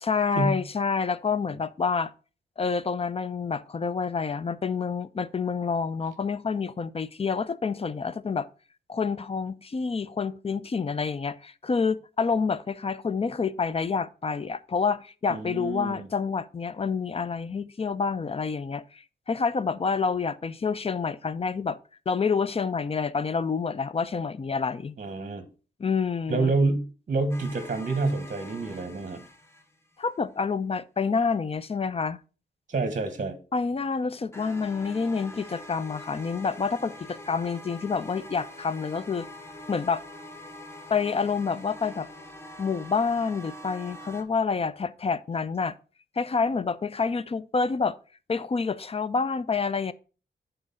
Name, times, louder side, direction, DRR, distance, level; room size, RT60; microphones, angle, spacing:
voice 1, 0.0-2.1 2.6-8.5 8.9-21.8 22.1-25.0 25.8-26.5 30.0-32.2 33.5-39.3 39.7-40.0 40.9-42.1 42.6-45.7 46.2-48.0 48.3-49.9, left 5 dB, 30° left, 0.4 m, -28 dB
voice 2, 15.3-16.1 25.0-25.4 26.3-29.2 32.7-33.4, right 3 dB, 45° right, 1.0 m, -28 dB
sound 1, 27.3-30.1 34.3-44.2, left 1 dB, 15° left, 0.8 m, -44 dB
6.3 x 3.9 x 5.4 m
wide cardioid pair, 140°, 19 cm